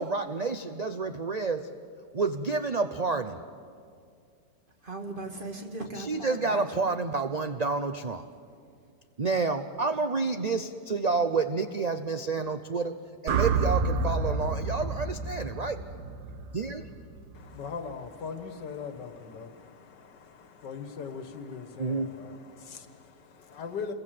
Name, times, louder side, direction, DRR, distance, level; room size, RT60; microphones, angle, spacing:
voice 1, 0.0-1.7 2.1-3.4 5.9-8.3 9.2-13.0 13.2-15.8 16.5-16.9 21.8-22.1, right 4 dB, 50° right, 8 dB, 0.4 m, -29 dB
voice 2, 4.8-6.9, right 2 dB, 30° right, 3 dB, 2.2 m, -38 dB
sound 1, 13.3-17.5, right 4 dB, 70° right, 1.7 m, -29 dB
voice 3, 17.3-23.9, left 5 dB, 85° left, 8 dB, 2.1 m, -40 dB
28.5 x 22.0 x 7.7 m, 2.3 s
omnidirectional pair, 1.8 m